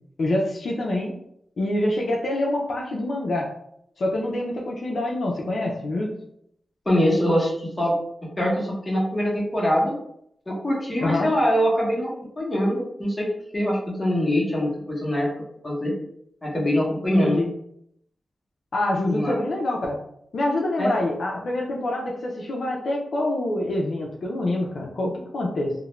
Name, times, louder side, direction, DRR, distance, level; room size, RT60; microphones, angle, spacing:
voice 1, 0.2-1.2 1.6-3.5 4.0-6.1 11.0-11.3 17.2-17.5 18.7-20.0 20.3-25.7, left 1 dB, 65° left, -2 dB, 0.4 m, -26 dB
voice 2, 6.9-8.0 8.4-10.0 10.5-12.1 12.4-13.3 13.5-15.3 15.6-15.9 16.4-17.4 19.0-19.4 20.8-21.0, equal, 20° left, -5 dB, 0.9 m, -23 dB
2.4 x 2.0 x 3.0 m, 0.72 s
wide cardioid pair, 130°, 0 cm